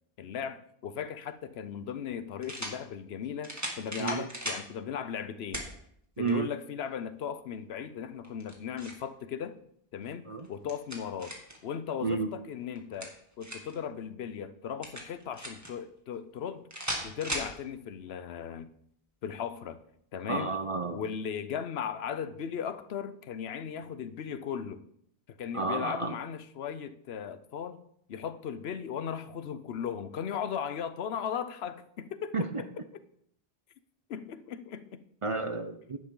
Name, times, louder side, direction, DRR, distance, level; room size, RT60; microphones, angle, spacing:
voice 1, 0.2-5.7 6.2-9.6 9.9-11.4 11.6-16.7 17.0-18.7 19.2-19.8 20.1-20.5 20.9-24.8 25.3-27.8 28.1-32.4 34.1-35.0, left 8 dB, 75° left, 0.9 m, -37 dB
sound 1, 1.2-1.3 2.4-2.8 3.4-4.6 5.5-5.7 6.3-6.4 8.2-9.0 10.4-11.6 12.7-13.8 14.8-15.7 16.7-17.5, right 1 dB, 15° right, 1.9 m, -37 dB
voice 2, 6.2-6.5 10.3-10.5 12.0-12.3 20.3-21.0 25.5-26.1 32.3-32.6 35.2-36.0, right 4 dB, 35° right, 0.6 m, -31 dB
10.5 x 9.5 x 3.8 m
omnidirectional pair, 1.1 m